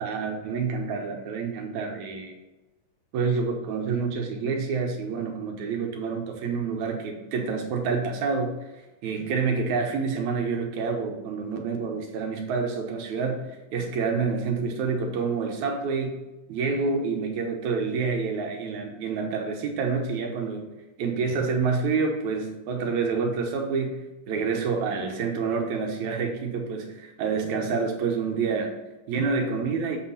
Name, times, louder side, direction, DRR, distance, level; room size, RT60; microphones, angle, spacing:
voice 1, 0.0-2.3 3.1-8.6 9.0-16.2 16.5-20.7 21.0-28.7 29.1-30.0, right 5 dB, 70° right, 3 dB, 2.1 m, -28 dB
7.8 x 4.3 x 5.6 m, 1.1 s
omnidirectional pair, 3.8 m